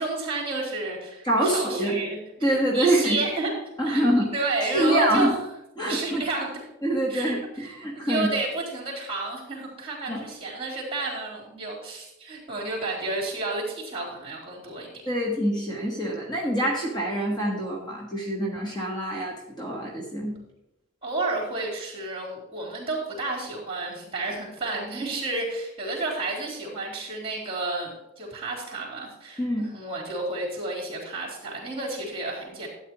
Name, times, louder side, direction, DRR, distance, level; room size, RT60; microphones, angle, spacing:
voice 1, 0.0-3.5 3.8-5.3 5.9-6.6 7.1-7.7 7.9-14.9 21.0-32.7, right 2 dB, 30° right, -3 dB, 3.7 m, -31 dB
voice 2, 1.2-2.0 2.4-3.2 3.8-4.3 4.7-5.3 5.8-6.2 6.8-8.3 10.1-10.2 15.1-20.3 29.4-29.7, right 1 dB, 20° left, -2 dB, 1.5 m, -25 dB
12.5 x 9.1 x 3.0 m, 0.89 s
head